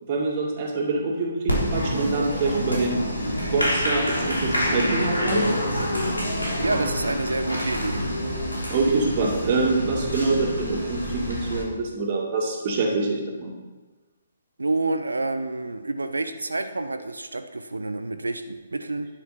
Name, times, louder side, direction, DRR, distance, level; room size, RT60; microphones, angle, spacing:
voice 1, 0.0-3.0 3.4-5.5 8.7-13.5, right 3 dB, 35° right, 0 dB, 2.2 m, -25 dB
Applause, 1.5-11.6, equal, 85° left, 3.4 m, -27 dB
voice 2, 6.6-8.0 14.6-19.1, right 2 dB, 70° right, 9 dB, 0.7 m, -28 dB
11.5 x 9.4 x 4.3 m, 1.3 s
figure-of-eight pair, 130°, 0 cm